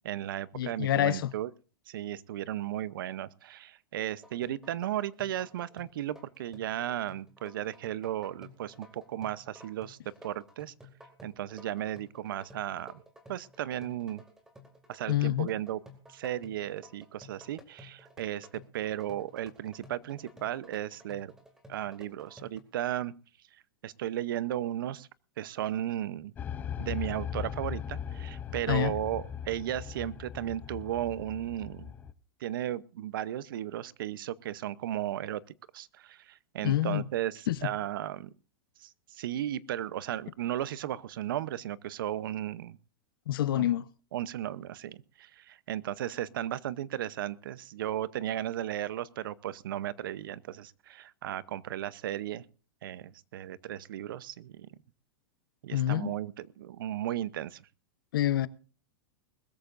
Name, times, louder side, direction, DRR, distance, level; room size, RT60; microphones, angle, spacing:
voice 1, 0.0-1.5 1.9-10.0 10.2-10.7 11.2-13.0 13.3-14.2 14.9-15.8 16.1-21.3 21.7-23.1 23.8-25.1 25.4-26.3 26.8-31.9 32.4-35.4 35.7-38.3 38.8-42.8 43.5-43.7 44.1-52.4 52.8-54.7 55.6-57.6, right 12 dB, 70° right, 0.8 m, -35 dB
voice 2, 0.5-1.3 15.1-15.5 28.7-28.9 36.6-37.0 37.5-37.6 43.3-43.9 55.7-56.1 58.1-58.5, left 13 dB, 75° left, 0.9 m, -27 dB
sound 1, 4.2-22.6, left 1 dB, 5° right, 2.2 m, -54 dB
sound 2, 26.4-32.1, left 8 dB, 15° left, 0.6 m, -39 dB
21.0 x 14.0 x 2.6 m
supercardioid pair, 170°, 12 cm